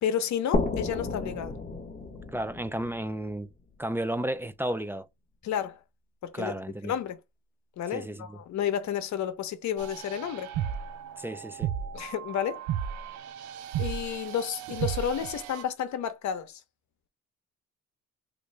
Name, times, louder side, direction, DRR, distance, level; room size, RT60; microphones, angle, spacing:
voice 1, 0.0-1.5 5.4-5.8 6.2-6.5 6.8-7.2 7.8-10.5 11.9-12.6 13.8-16.6, left 9 dB, 65° left, 0.8 m, -31 dB
sound 1, 0.5-4.0, left 3 dB, 25° left, 0.9 m, -32 dB
voice 2, 2.3-3.5 3.8-5.1 6.3-6.9 7.9-8.4 11.2-11.7, right 1 dB, 10° right, 0.3 m, -33 dB
sound 2, 9.8-15.6, right 9 dB, 75° right, 0.5 m, -35 dB
3.1 x 2.6 x 3.2 m
cardioid pair, 90°, 30 cm